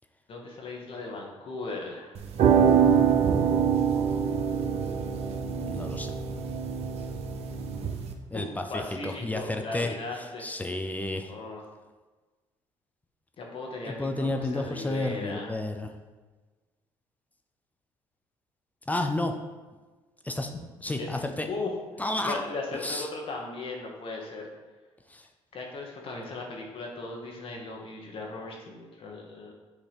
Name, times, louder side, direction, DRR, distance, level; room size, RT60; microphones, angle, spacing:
voice 1, 0.3-2.1 8.3-10.4 11.3-11.6 13.4-15.5 21.0-21.1 21.5-21.7 22.2-24.5 25.5-29.5, left 3 dB, 50° left, 0 dB, 1.2 m, -37 dB
sound 1, 2.1-8.1, right 7 dB, 60° right, 0.7 m, -25 dB
voice 2, 5.6-6.1 8.3-11.3 13.9-15.9 18.9-19.3 20.2-20.5 20.8-21.5 22.0-22.4 22.7-23.1 25.1-25.3, left 2 dB, 15° left, 5 dB, 0.6 m, -31 dB
6.5 x 2.8 x 5.1 m, 1.3 s
supercardioid pair, 70°, 12 cm